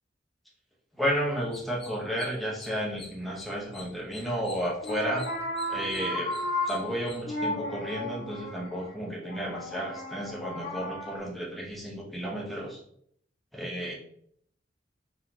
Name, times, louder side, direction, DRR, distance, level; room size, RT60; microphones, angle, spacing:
voice 1, 1.0-5.2 5.7-6.4 6.6-12.8 13.5-13.9, equal, ahead, -3 dB, 1.0 m, -32 dB
sound 1, 1.4-7.2, left 3 dB, 30° left, 0.6 m, -49 dB
sound 2, 4.7-11.2, left 1 dB, 55° left, 1.3 m, -34 dB
4.2 x 3.9 x 2.8 m, 0.67 s
head